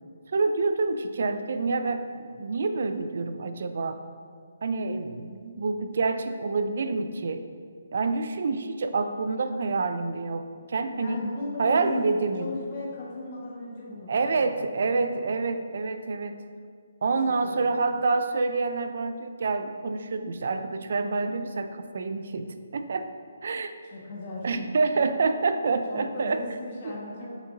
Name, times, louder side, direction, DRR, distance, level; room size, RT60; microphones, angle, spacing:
voice 1, 0.3-4.0 4.6-7.4 7.9-11.2 11.6-12.5 14.1-16.4 17.0-23.1 23.4-23.7 24.4-26.4, right 3 dB, 55° right, 9 dB, 0.4 m, -27 dB
voice 2, 10.9-12.1 12.4-15.3 17.2-17.6 23.8-24.7 25.9-27.3, left 2 dB, 35° left, -4 dB, 1.4 m, -37 dB
6.5 x 6.0 x 2.6 m, 2.1 s
hypercardioid pair, 170°, 0 cm